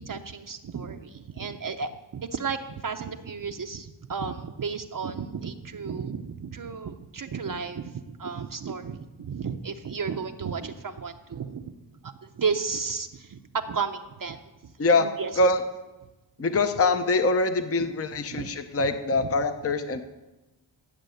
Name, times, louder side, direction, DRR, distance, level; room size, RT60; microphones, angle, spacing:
voice 1, 0.0-11.7 12.0-14.7 15.0-15.3 18.3-18.5 18.8-19.3, right 5 dB, 45° right, 5 dB, 0.7 m, -33 dB
voice 2, 16.4-20.0, left 3 dB, 30° left, 8 dB, 0.7 m, -24 dB
16.0 x 7.4 x 9.2 m, 1.1 s
wide cardioid pair, 170°, 48 cm